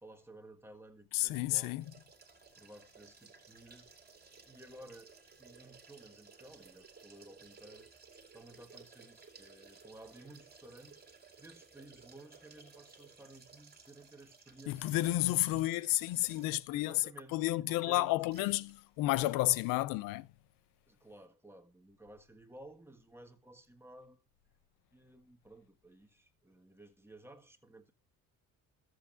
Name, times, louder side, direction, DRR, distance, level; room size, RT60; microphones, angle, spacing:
voice 1, 0.0-1.8 2.6-3.9 4.5-7.9 8.3-11.1 11.4-15.0 16.7-18.2 20.9-24.3 24.9-27.9, right 2 dB, 5° right, 1.6 m, -55 dB
voice 2, 1.1-1.8 14.7-17.0 17.3-20.3, left 17 dB, 85° left, 0.5 m, -31 dB
sound 1, 1.8-16.8 17.2-17.3 18.3-18.7 19.0-19.1, right 4 dB, 30° right, 2.5 m, -58 dB
14.0 x 7.7 x 2.5 m
cardioid pair, 85°, 33 cm